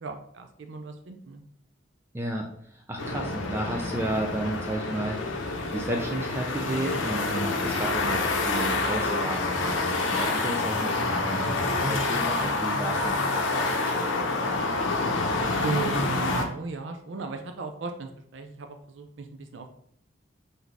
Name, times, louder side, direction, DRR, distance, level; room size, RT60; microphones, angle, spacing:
voice 1, 0.0-1.4 11.8-12.2 15.6-19.7, right 3 dB, 70° right, 5 dB, 0.5 m, -35 dB
voice 2, 2.1-5.2 5.7-14.3, right 1 dB, 15° right, 1 dB, 0.4 m, -33 dB
sound 1, 3.0-16.5, left 3 dB, 75° left, 0.7 m, -27 dB
4.0 x 2.7 x 4.6 m, 0.65 s
head